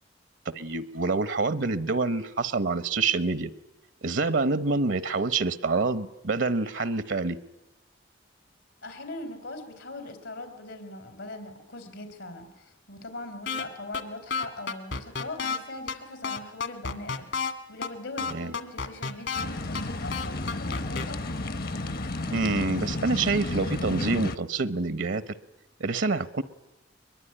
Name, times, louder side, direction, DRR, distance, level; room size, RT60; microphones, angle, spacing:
voice 1, 0.5-3.5 4.0-7.4 18.3-18.5 22.3-25.2 25.8-26.4, right 3 dB, 75° right, 16 dB, 0.9 m, -27 dB
voice 2, 8.8-17.3 17.7-21.4, left 2 dB, 90° left, 7 dB, 3.7 m, -41 dB
sound 1, 13.5-13.6 13.9-14.0 14.3-15.6 15.9-16.0 16.2-17.5 17.8-17.9 18.2-19.4 19.7-19.8 20.1-21.0, left 5 dB, 70° left, 2.1 m, -30 dB
sound 2, 19.3-24.4, left 2 dB, 50° left, 0.8 m, -32 dB
22.5 x 21.5 x 10.0 m, 0.97 s
head